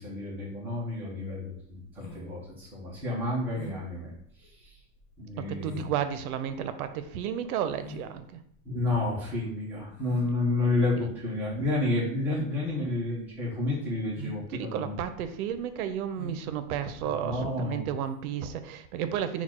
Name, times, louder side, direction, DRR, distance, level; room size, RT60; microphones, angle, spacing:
voice 1, 0.0-4.1 4.4-4.7 5.2-5.8 8.6-14.9 17.0-17.9, left 2 dB, 5° right, -7 dB, 0.4 m, -30 dB
sound 1, 1.4-17.7, equal, 50° left, 0.9 m, -46 dB
voice 2, 5.5-8.4 11.0-11.1 14.5-19.4, right 9 dB, 85° right, 10 dB, 0.6 m, -32 dB
4.2 x 2.3 x 4.2 m, 0.69 s
supercardioid pair, 175°, 43 cm